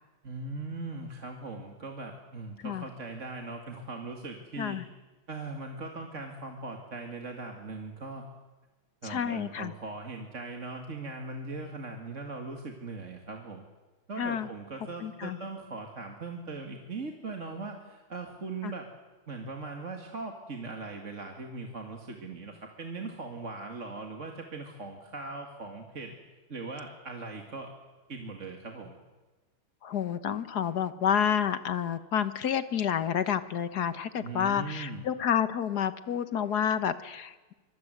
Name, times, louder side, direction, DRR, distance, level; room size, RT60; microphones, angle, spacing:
voice 1, 0.2-4.8 5.3-8.3 9.0-13.6 14.1-18.9 19.3-26.1 26.5-27.7 28.1-29.0 34.2-35.1, right 3 dB, 35° right, 3 dB, 2.4 m, -40 dB
voice 2, 9.0-9.7 14.2-14.5 15.0-15.4 18.6-18.7 29.8-37.3, left 8 dB, 55° left, 12 dB, 1.6 m, -29 dB
25.5 x 23.5 x 8.1 m, 1.2 s
omnidirectional pair, 2.3 m